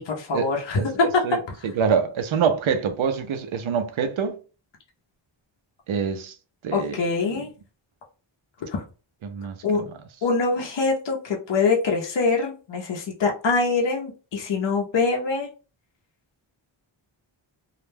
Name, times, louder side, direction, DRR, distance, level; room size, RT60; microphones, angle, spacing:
voice 1, 0.0-1.1 6.7-7.5 8.7-8.8 9.6-9.8 10.2-15.5, left 4 dB, 65° left, 0.7 m, -24 dB
voice 2, 0.8-4.3 5.9-6.3 6.6-7.0 7.4-7.5 9.2-9.6, right 6 dB, 75° right, 0.6 m, -25 dB
2.3 x 2.1 x 3.2 m
wide cardioid pair, 115°, 48 cm